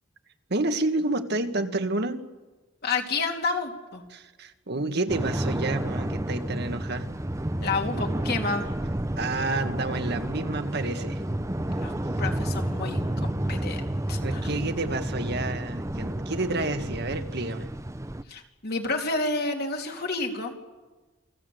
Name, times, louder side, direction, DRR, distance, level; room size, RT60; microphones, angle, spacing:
voice 1, 0.5-2.2 4.1-7.1 9.2-11.2 14.2-17.7, right 2 dB, 55° right, 8 dB, 1.7 m, -29 dB
voice 2, 2.8-4.0 7.6-8.7 11.8-11.9 12.2-13.8 14.1-14.5 18.3-20.7, left 3 dB, 50° left, 2 dB, 3.2 m, -30 dB
sound 1, 5.1-18.2, right 1 dB, 15° right, 0.8 m, -30 dB
28.5 x 20.5 x 7.9 m, 1.2 s
head